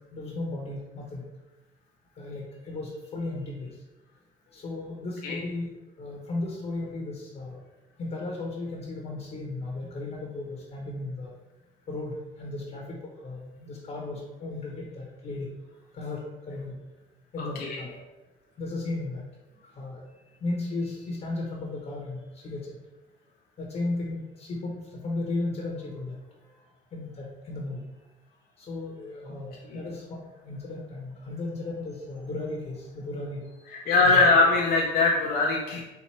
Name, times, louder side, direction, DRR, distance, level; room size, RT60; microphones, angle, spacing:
voice 1, 0.1-1.2 2.1-3.8 4.5-7.6 8.0-11.3 11.9-15.5 15.9-16.8 17.3-18.0 18.6-19.2 19.6-22.8 23.6-26.6 26.9-27.8 28.6-34.2, left 2 dB, 40° left, -1 dB, 1.1 m, -35 dB
voice 2, 33.7-35.8, left 3 dB, 65° left, -2 dB, 0.7 m, -22 dB
4.6 x 2.6 x 4.2 m, 1.1 s
cardioid pair, 110°, 17 cm